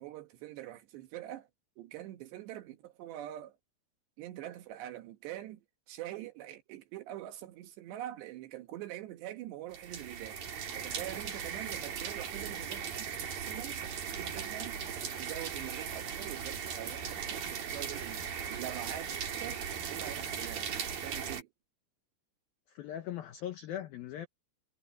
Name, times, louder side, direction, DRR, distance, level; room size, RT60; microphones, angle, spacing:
voice 1, 0.0-1.5 1.8-3.6 4.2-5.6 5.9-10.4 10.7-18.2 18.5-19.1 19.4-19.6 19.9-20.7 21.0-21.5, right 13 dB, 70° right, 3.0 m, -44 dB
sound 1, 9.7-21.4, right 7 dB, 50° right, 4.5 m, -38 dB
voice 2, 22.7-24.3, left 11 dB, 85° left, 2.1 m, -39 dB
omnidirectional pair, 5.8 m